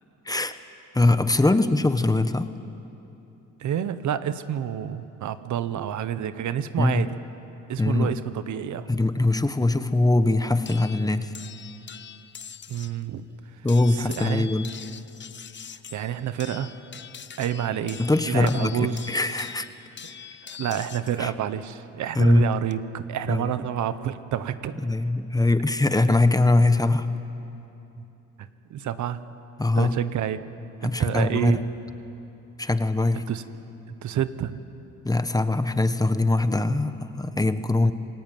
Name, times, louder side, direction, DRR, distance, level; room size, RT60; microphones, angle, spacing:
voice 1, 0.2-0.6 0.9-2.5 6.8-7.0 7.8-8.1 8.9-11.3 13.6-14.7 18.0-19.7 21.2-21.3 22.1-22.4 23.3-23.5 24.8-27.1 29.6-30.0 30.8-31.6 32.6-33.2 35.0-37.9, left 2 dB, 10° left, 11 dB, 1.2 m, -22 dB
voice 2, 3.6-7.1 7.7-8.9 12.7-13.2 14.0-14.5 15.9-16.7 17.4-18.0 18.3-19.1 20.4-24.9 28.7-29.2 29.8-30.4 30.8-31.6 33.3-33.4 33.9-34.6, right 10 dB, 70° right, 12 dB, 1.2 m, -28 dB
sound 1, 10.7-13.0 13.7-21.2 22.3-22.7, left 7 dB, 40° left, 0.9 m, -43 dB
28.0 x 19.0 x 9.4 m, 2.9 s
cardioid pair, 90°, 30 cm